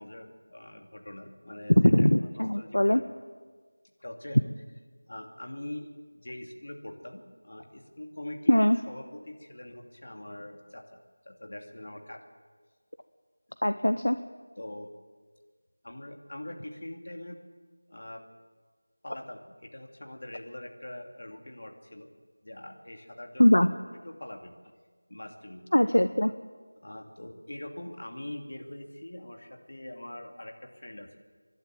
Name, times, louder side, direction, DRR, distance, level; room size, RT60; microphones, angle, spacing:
voice 1, 0.0-3.0 4.0-4.4 5.1-12.2 14.6-14.9 15.8-17.4 17.9-18.2 19.0-22.1 22.4-23.6 24.0-24.5 25.1-25.6 26.8-31.2, left 1 dB, 55° left, 3 dB, 2.6 m, -43 dB
voice 2, 1.8-3.0 8.5-8.8 13.6-14.2 23.4-23.7 25.7-26.3, left 1 dB, 75° left, 11 dB, 0.8 m, -21 dB
29.5 x 12.0 x 7.7 m, 1.5 s
figure-of-eight pair, 170°, 0 cm